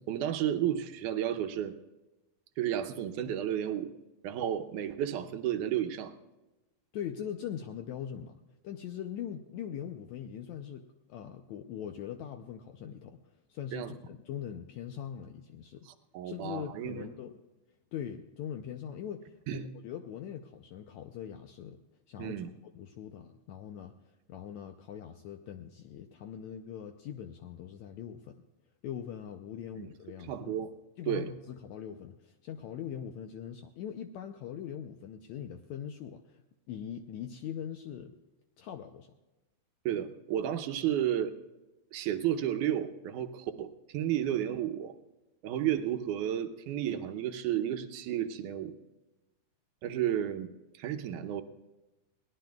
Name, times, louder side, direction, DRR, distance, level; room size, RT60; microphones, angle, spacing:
voice 1, 0.1-1.7 2.6-3.9 4.2-6.1 13.7-13.9 15.9-17.1 19.5-19.7 22.2-22.5 29.8-29.9 30.2-30.7 31.1-31.3 39.9-41.3 41.9-44.9 45.4-48.7 49.8-50.5 50.8-51.4, right 10 dB, 75° right, 7 dB, 2.2 m, -32 dB
voice 2, 6.9-8.4 8.6-13.2 13.5-15.9 16.2-17.3 17.9-21.8 22.1-23.9 24.3-28.3 28.8-30.5 31.0-38.1 38.6-39.1, left 9 dB, 75° left, 6 dB, 1.7 m, -41 dB
22.5 x 18.0 x 2.3 m, 1.0 s
omnidirectional pair, 3.8 m